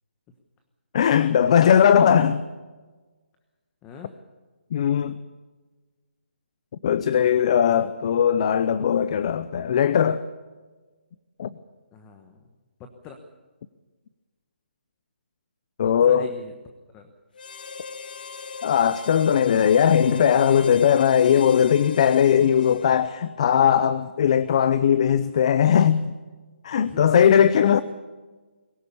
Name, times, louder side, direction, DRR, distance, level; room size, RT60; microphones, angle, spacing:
voice 1, 0.9-2.4 4.7-5.2 6.8-10.2 11.4-11.5 15.8-16.3 18.6-26.1 26.6-27.8, left 8 dB, 35° left, 0.7 m, -19 dB
voice 2, 3.8-4.1 11.9-12.4 12.8-13.2 15.8-16.5 16.9-17.1 26.8-27.5, left 5 dB, 15° left, 1.2 m, -43 dB
Harmonica, 17.3-23.3, left 5 dB, 55° left, 1.0 m, -39 dB
23.0 x 15.0 x 8.4 m
hypercardioid pair, 165°, 6 cm